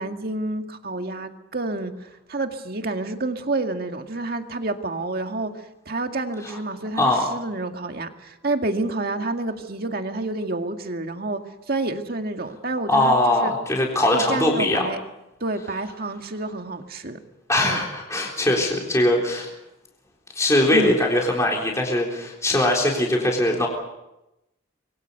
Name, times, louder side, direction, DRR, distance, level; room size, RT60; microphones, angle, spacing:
voice 1, 0.0-5.5 5.9-11.4 11.7-13.5 14.1-15.0 15.4-17.2 17.6-17.8 20.7-21.0, right 2 dB, 50° right, 5 dB, 2.0 m, -29 dB
voice 2, 7.0-7.3 12.9-14.8 17.5-19.5 20.3-23.7, left 1 dB, 15° left, -1 dB, 3.9 m, -21 dB
26.0 x 22.5 x 6.8 m, 0.93 s
head